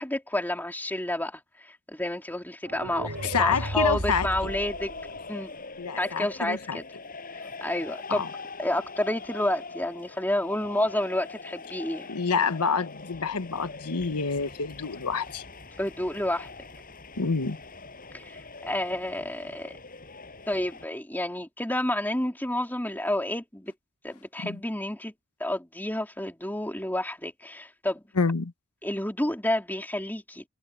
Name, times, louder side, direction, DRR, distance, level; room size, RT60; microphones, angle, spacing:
voice 1, 0.0-4.9 5.3-5.5 6.0-6.8 7.6-8.2 8.6-12.1 15.8-16.5 18.1-19.7 20.5-23.7 24.0-25.1 25.4-28.0 28.8-30.4, left 1 dB, 10° left, 3.2 m, -30 dB
sound 1, 2.6-5.6, right 1 dB, 65° right, 2.9 m, -35 dB
sound 2, 3.1-20.9, left 3 dB, 40° left, 7.1 m, -43 dB
voice 2, 3.2-4.3 5.8-6.8 8.1-8.3 12.1-15.4 17.2-17.6 24.4-24.6 28.2-28.5, left 5 dB, 90° left, 1.1 m, -27 dB
head